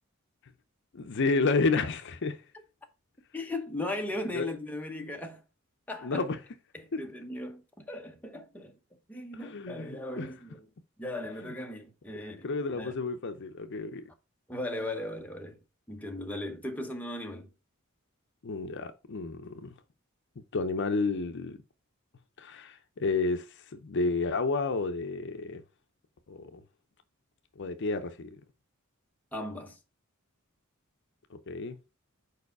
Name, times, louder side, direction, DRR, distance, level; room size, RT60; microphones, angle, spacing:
voice 1, 0.9-2.4 4.3-4.5 6.0-6.4 6.9-7.0 9.4-10.3 12.4-14.0 18.4-19.7 20.5-21.6 22.4-23.5 23.8-25.6 26.3-26.6 27.6-28.3 31.5-31.8, left 3 dB, 60° left, 0.6 m, -30 dB
voice 2, 3.3-5.4 5.9-6.2 6.7-8.7 9.1-10.7 11.0-12.5 12.7-12.9 14.5-15.6 15.9-17.5 29.3-29.8, left 1 dB, 10° left, 0.9 m, -37 dB
4.8 x 4.7 x 4.7 m
head